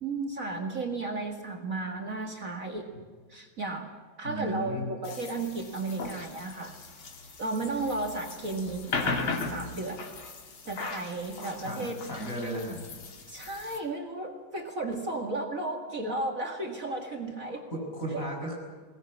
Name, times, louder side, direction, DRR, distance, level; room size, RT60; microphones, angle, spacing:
voice 1, 0.0-2.9 3.3-3.9 4.2-6.8 7.4-10.1 10.7-12.0 13.3-17.7 18.1-18.2, right 2 dB, 40° right, 3 dB, 2.3 m, -34 dB
voice 2, 4.2-4.9 11.6-12.8 17.7-18.6, equal, 40° left, -1 dB, 7.7 m, -34 dB
sound 1, 5.0-13.8, left 4 dB, 90° left, 3.2 m, -38 dB
22.0 x 19.0 x 8.7 m, 1.5 s
omnidirectional pair, 2.2 m